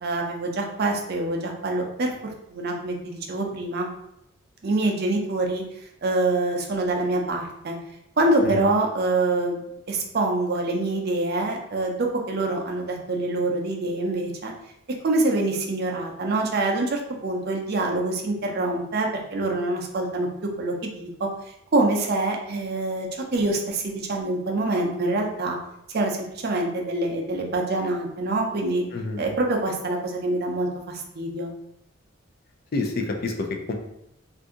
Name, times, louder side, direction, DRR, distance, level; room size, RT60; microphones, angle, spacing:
voice 1, 0.0-3.9 4.6-5.6 6.0-7.8 8.2-9.6 9.9-14.5 15.0-25.6 25.9-28.8 29.2-31.5, right 2 dB, 45° right, 1 dB, 0.5 m, -25 dB
voice 2, 32.7-33.7, left 3 dB, 45° left, 3 dB, 0.4 m, -28 dB
2.6 x 2.5 x 3.6 m, 0.83 s
head